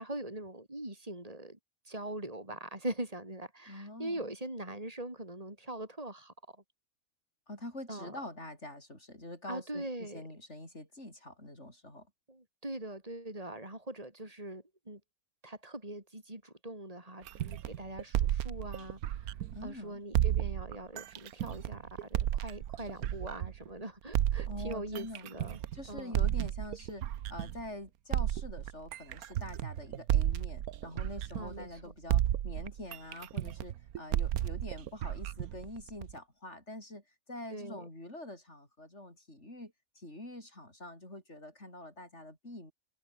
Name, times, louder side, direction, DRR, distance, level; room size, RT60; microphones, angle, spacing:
voice 1, 0.0-1.6 1.9-6.6 7.9-8.2 9.5-10.2 12.3-15.0 15.4-19.3 19.6-25.6 25.9-26.1 31.3-31.9 37.5-37.8, right 1 dB, 25° right, 5.5 m, -42 dB
voice 2, 3.7-4.3 7.5-12.1 19.5-20.0 24.5-25.3 25.7-37.0 37.3-42.7, left 1 dB, 50° left, 8.4 m, -45 dB
sound 1, 17.3-19.7 20.1-23.7 24.1-27.7 28.1-31.8 32.1-36.2, right 12 dB, 85° right, 1.3 m, -32 dB
omnidirectional pair, 1.5 m